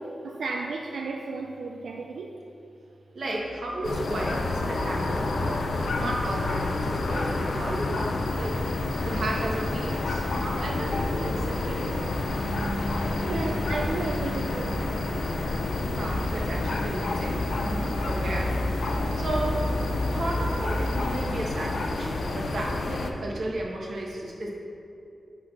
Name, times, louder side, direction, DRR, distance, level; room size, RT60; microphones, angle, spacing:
voice 1, 0.0-2.3 13.2-14.9, right 3 dB, 90° right, 1 dB, 0.4 m, -33 dB
voice 2, 3.1-5.7 6.0-8.6 9.0-12.3 15.9-19.7 20.1-24.5, right 1 dB, 60° right, -2 dB, 1.3 m, -33 dB
sound 1, 3.8-23.1, left 2 dB, 75° left, 0.6 m, -29 dB
sound 2, 8.0-21.3, left 1 dB, 10° left, 0.5 m, -37 dB
Bass guitar, 12.4-18.7, right 1 dB, 35° right, 0.7 m, -41 dB
8.3 x 4.2 x 6.0 m, 2.6 s
wide cardioid pair, 175°, 0 cm